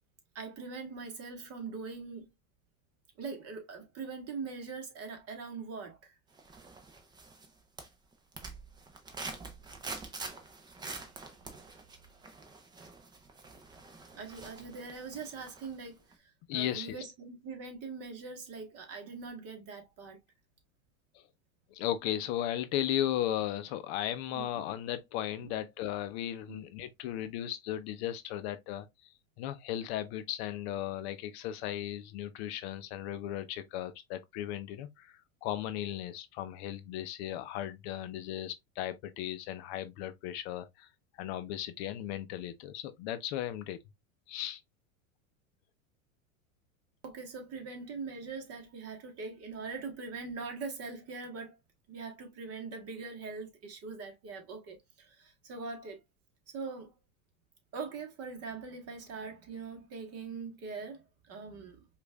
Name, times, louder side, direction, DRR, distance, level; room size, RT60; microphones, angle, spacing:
voice 1, 0.3-2.3 3.2-6.1 11.4-11.8 14.1-20.2 24.3-24.5 25.4-25.5 26.5-26.6 47.0-51.6 51.9-56.0 56.5-56.9 57.7-61.8, right 4 dB, 35° right, 1.3 m, -42 dB
sound 1, 6.4-7.5 7.8-15.8 16.1-16.2, right 3 dB, 10° right, 0.5 m, -46 dB
voice 2, 16.5-17.0 21.1-21.2 21.7-29.1 29.4-40.9 41.2-43.8 44.3-44.6, left 12 dB, 50° left, 0.5 m, -36 dB
5.0 x 2.5 x 2.2 m
supercardioid pair, 120°, 42 cm